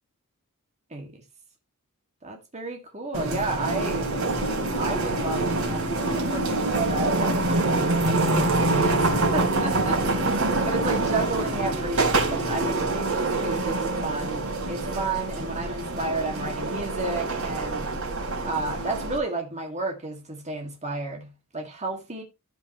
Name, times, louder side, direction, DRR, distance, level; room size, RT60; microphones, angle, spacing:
voice 1, 0.9-1.2 2.2-4.1 4.8-10.4 10.7-17.9 18.4-22.2, right 2 dB, 30° right, 2.0 m, -32 dB
sound 1, 3.1-19.2, right 2 dB, 70° right, 3.5 m, -25 dB
16.0 x 5.5 x 3.0 m
head